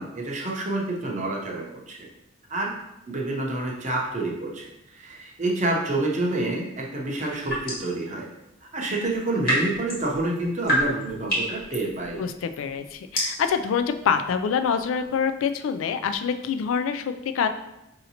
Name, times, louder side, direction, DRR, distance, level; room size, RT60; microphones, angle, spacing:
voice 1, 0.0-2.1 2.5-2.7 3.1-8.3 8.7-12.2, right 2 dB, 35° right, -2 dB, 0.7 m, -28 dB
sound 1, 7.2-8.0 9.1-16.8, equal, 45° left, 1.4 m, -31 dB
voice 2, 12.2-17.5, left 6 dB, 75° left, 9 dB, 0.3 m, -26 dB
5.0 x 2.8 x 2.8 m, 0.86 s
head